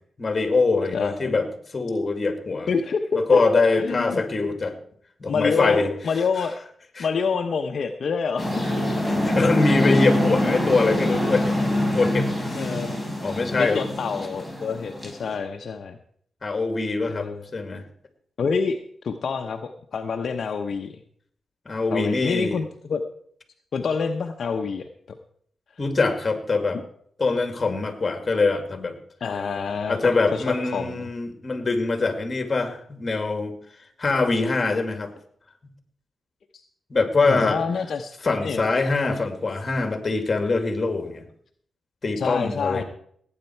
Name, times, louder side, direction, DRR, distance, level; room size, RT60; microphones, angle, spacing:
voice 1, 0.2-2.7 3.1-4.7 5.2-5.9 7.0-7.1 8.6-8.7 9.0-11.6 11.9-12.7 13.2-13.8 16.4-17.8 21.7-22.6 25.8-26.8 27.2-28.9 29.9-33.6 34.0-35.1 36.9-37.6 38.2-41.2 42.0-42.8, left 3 dB, 35° left, 7 dB, 2.4 m, -23 dB
voice 2, 0.9-1.3 2.7-4.2 5.3-6.5 7.0-8.6 12.6-13.0 13.6-16.0 17.0-17.4 18.4-18.8 19.0-21.0 21.9-23.0 23.7-24.9 29.2-31.1 36.5-36.6 37.2-38.1 38.4-38.7 42.2-42.8, left 5 dB, 60° left, 4 dB, 0.9 m, -27 dB
sound 1, 8.4-15.3, left 1 dB, 5° right, 4.3 m, -25 dB
17.5 x 9.0 x 4.6 m, 0.62 s
cardioid pair, 80°, 0 cm